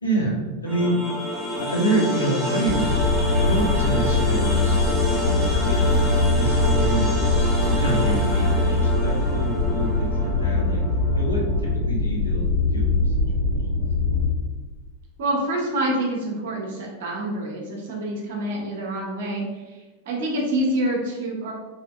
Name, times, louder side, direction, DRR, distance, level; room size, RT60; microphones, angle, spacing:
voice 1, 0.0-0.9 1.6-2.9 3.4-7.3 7.6-10.8 11.1-11.4 11.7-13.1, right 2 dB, 80° left, -4 dB, 0.9 m, -27 dB
sound 1, 0.7-11.7, equal, 5° left, 0.8 m, -28 dB
sound 2, 2.6-14.3, left 2 dB, 75° right, 0.5 m, -22 dB
voice 2, 15.2-21.5, right 1 dB, 55° right, -2 dB, 0.8 m, -27 dB
3.6 x 2.6 x 2.2 m, 1.3 s
figure-of-eight pair, 90°, 0 cm